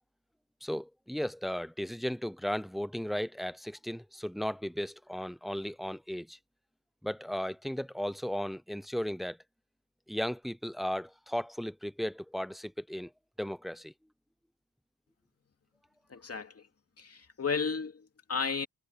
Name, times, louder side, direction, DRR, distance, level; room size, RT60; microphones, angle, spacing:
voice 1, 0.6-6.4 7.0-9.4 10.1-13.1 13.4-13.9, equal, ahead, 0.5 m, -35 dB
voice 2, 16.1-16.6 17.0-18.7, left 5 dB, 40° left, 2.5 m, -33 dB
wide cardioid pair, 140°, 37 cm